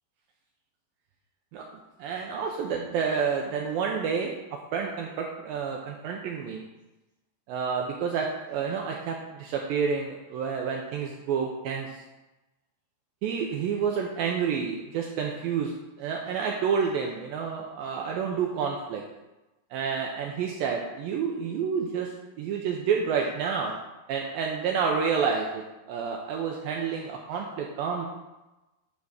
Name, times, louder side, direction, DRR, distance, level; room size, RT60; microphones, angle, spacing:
voice 1, 2.0-4.3 4.7-6.6 7.5-12.0 13.2-19.0 19.7-22.1 22.4-23.8 24.1-28.1, right 6 dB, 85° right, 0 dB, 2.1 m, -29 dB
9.7 x 3.5 x 6.3 m, 1.0 s
omnidirectional pair, 4.8 m